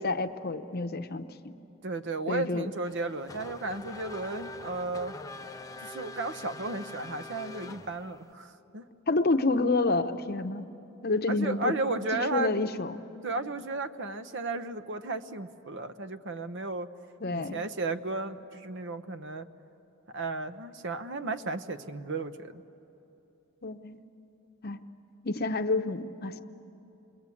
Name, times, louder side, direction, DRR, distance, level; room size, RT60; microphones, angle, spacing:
voice 1, 0.0-1.5 2.3-2.7 9.1-10.7 11.0-11.7 12.3-13.0 17.2-17.6 23.6-24.0 24.6-24.8 25.2-26.4, left 3 dB, 45° left, 9 dB, 0.8 m, -29 dB
voice 2, 1.8-5.1 5.8-8.8 11.3-12.5 13.2-16.9 17.3-19.5 20.1-22.6, right 3 dB, 55° right, 10 dB, 0.8 m, -34 dB
Race car auto racing / Accelerating revving vroom, 2.8-8.3, left 2 dB, 15° left, 0.5 m, -44 dB
29.5 x 21.5 x 8.5 m, 3.0 s
head